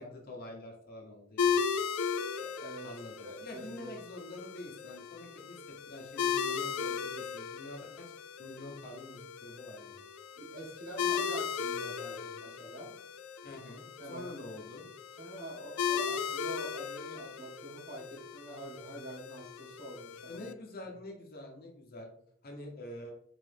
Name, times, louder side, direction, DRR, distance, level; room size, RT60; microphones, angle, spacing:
voice 1, 0.0-1.6 2.8-8.1 8.4-10.0 13.4-14.9 20.3-22.1 22.4-23.1, left 1 dB, 45° left, 1 dB, 0.9 m, -46 dB
sound 1, 1.4-20.5, left 6 dB, 80° left, 0.3 m, -37 dB
voice 2, 2.3-2.9 3.2-4.0 10.4-13.0 13.5-13.6 14.0-14.3 15.2-20.4, right 1 dB, 45° right, -2 dB, 1.4 m, -46 dB
3.9 x 3.0 x 3.4 m, 0.64 s
head